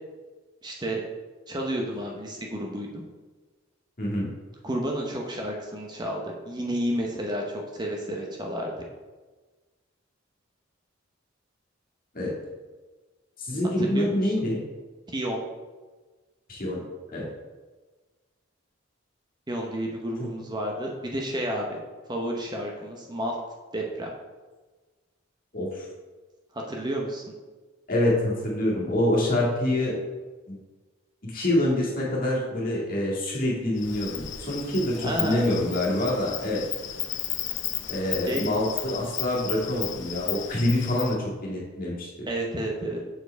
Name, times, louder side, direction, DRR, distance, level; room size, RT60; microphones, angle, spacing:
voice 1, 0.6-1.0 1.5-3.0 4.6-8.7 13.8-14.3 15.1-15.4 19.5-21.8 22.1-23.4 23.7-24.1 26.5-27.2 35.0-35.5 38.3-38.5 42.3-43.0, right 1 dB, 20° right, 0 dB, 0.8 m, -31 dB
voice 2, 4.0-4.3 12.1-12.3 13.4-14.6 16.5-16.8 17.1-17.3 20.2-20.3 25.5-25.9 27.9-29.9 30.5-30.6 31.2-36.6 37.9-42.1, left 1 dB, 45° left, -4 dB, 1.9 m, -26 dB
Insect, 33.8-41.2, left 11 dB, 65° left, 0.6 m, -34 dB
7.0 x 4.6 x 4.5 m, 1.3 s
head